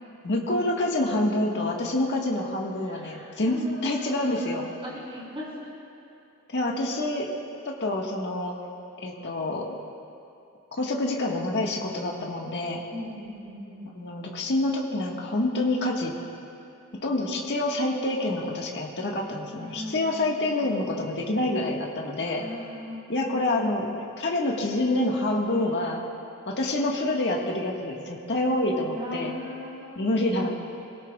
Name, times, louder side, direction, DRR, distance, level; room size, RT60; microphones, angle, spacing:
voice 1, 0.2-4.7 6.5-7.3 7.6-8.6 9.0-9.8 10.8-12.8 13.9-16.1 17.0-22.4 23.1-23.9 24.2-26.0 26.5-29.3 30.0-30.5, left 1 dB, 55° left, -1 dB, 1.6 m, -27 dB
voice 2, 2.8-4.5 4.8-5.7 12.9-13.9 19.5-20.7 22.2-23.3 24.5-24.8 28.9-30.2, left 1 dB, 25° right, -6 dB, 4.2 m, -39 dB
24.5 x 17.5 x 2.4 m, 2.7 s
head